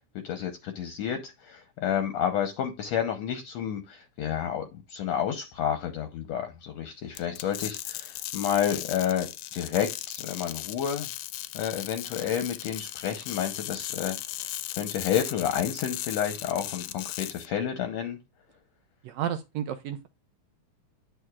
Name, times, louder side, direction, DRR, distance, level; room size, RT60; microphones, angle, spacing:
voice 1, 0.2-11.1 11.5-14.2 14.7-18.2, left 9 dB, 70° left, 1.9 m, -30 dB
sound 1, 7.1-17.5, left 14 dB, 90° left, 2.1 m, -37 dB
voice 2, 19.0-20.1, right 10 dB, 75° right, 1.7 m, -32 dB
9.7 x 6.3 x 2.3 m
omnidirectional pair, 3.5 m